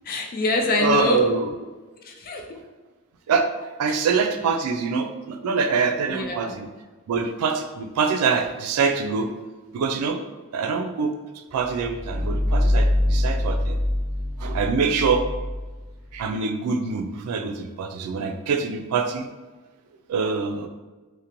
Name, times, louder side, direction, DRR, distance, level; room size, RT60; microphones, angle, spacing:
voice 1, 0.0-1.2 2.0-2.4 3.9-4.0 6.1-6.5, left 2 dB, 40° left, 2 dB, 0.4 m, -25 dB
voice 2, 0.8-1.5 3.3-6.7 7.1-9.3 9.7-10.2 10.5-11.1 11.5-13.8 14.4-15.3 16.1-19.3 20.1-20.7, right 5 dB, 85° right, 11 dB, 0.3 m, -24 dB
sound 1, 11.7-16.3, left 1 dB, 5° left, 1.0 m, -24 dB
2.8 x 2.1 x 2.5 m, 1.2 s
head